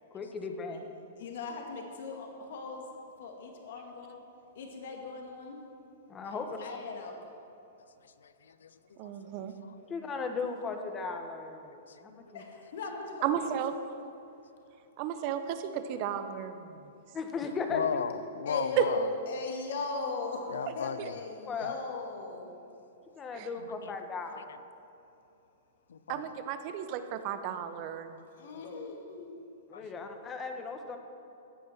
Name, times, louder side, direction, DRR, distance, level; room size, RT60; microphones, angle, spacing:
voice 1, 0.1-0.8 6.1-6.6 9.9-12.4 17.1-18.1 20.8-20.9 21.5-21.8 23.2-24.6 28.6-28.7 29.7-31.0, left 4 dB, 20° left, 5 dB, 1.4 m, -37 dB
voice 2, 1.2-2.8 3.2-4.2 4.6-5.6 6.3-7.1 12.3-13.5 18.5-22.5 28.4-29.3, left 3 dB, 65° left, 2 dB, 2.2 m, -39 dB
voice 3, 8.2-8.7 9.4-9.9 11.9-12.3 17.7-19.1 20.5-21.2 23.6-23.9 24.4-24.5 25.9-26.3 27.5-27.6 28.5-28.6 29.7-30.1, left 6 dB, 85° left, 14 dB, 0.6 m, -36 dB
voice 4, 9.0-9.5 13.2-13.7 15.0-16.7 18.8-18.9 23.3-23.5 26.1-28.1, right 10 dB, 45° right, 9 dB, 1.0 m, -33 dB
14.5 x 9.3 x 5.9 m, 2.8 s
hypercardioid pair, 135°, 0 cm